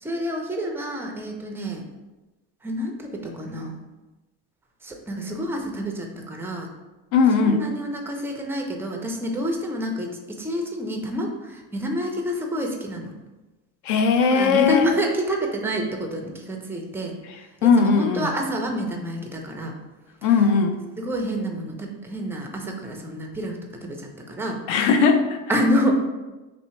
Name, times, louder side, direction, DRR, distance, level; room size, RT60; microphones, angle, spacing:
voice 1, 0.0-1.8 2.6-3.8 4.8-6.7 7.4-13.1 14.3-17.2 17.6-19.7 21.0-24.6 25.5-26.0, equal, 5° right, 1 dB, 0.3 m, -28 dB
voice 2, 7.1-7.7 13.8-14.9 17.6-18.3 20.2-20.8 24.7-25.4, left 5 dB, 70° left, 6 dB, 0.6 m, -19 dB
3.1 x 2.8 x 4.2 m, 1.1 s
cardioid pair, 130°, 38 cm